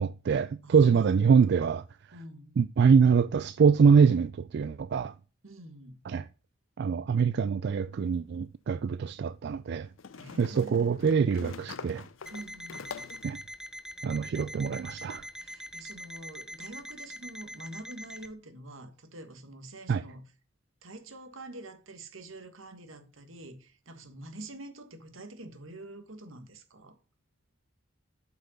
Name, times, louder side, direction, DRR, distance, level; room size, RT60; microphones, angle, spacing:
voice 1, 0.0-1.8 2.6-5.1 6.1-6.2 6.8-9.9 10.4-12.0 13.2-13.4 14.0-15.2 19.9-20.0, right 6 dB, 55° right, 0.3 m, -24 dB
voice 2, 0.6-1.6 2.1-2.6 5.4-6.0 10.1-11.0 12.3-13.0 15.4-20.3 20.8-27.0, right 1 dB, 80° right, 1.6 m, -46 dB
sound 1, 8.0-8.1 10.0-13.3, left 6 dB, 75° left, 0.6 m, -44 dB
Alarm, 12.3-18.3, equal, 5° right, 0.6 m, -44 dB
7.7 x 5.7 x 6.5 m
head